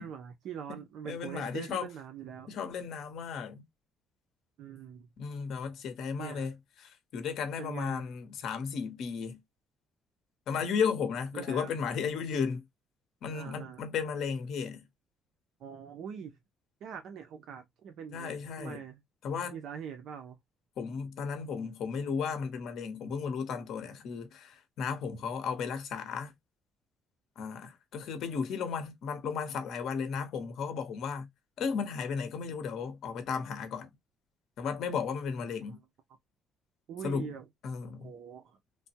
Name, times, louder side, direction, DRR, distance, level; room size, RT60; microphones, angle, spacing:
voice 1, 0.0-2.6 4.6-5.1 6.2-6.5 7.6-8.1 11.3-11.7 13.3-13.8 15.6-16.4 16.8-18.3 18.6-19.0 19.5-20.4 35.6-35.8 36.9-37.5 38.0-38.6, right 8 dB, 60° right, 0.6 m, -43 dB
voice 2, 0.7-1.9 2.5-3.6 5.2-6.5 6.8-9.4 10.5-12.6 13.2-14.8 18.1-18.8 19.2-19.6 20.8-26.3 27.4-31.3 31.6-33.9 34.6-35.8 37.0-37.3 37.6-38.1, left 6 dB, 60° left, 0.8 m, -34 dB
3.2 x 2.1 x 2.7 m
cardioid pair, 140°, 0 cm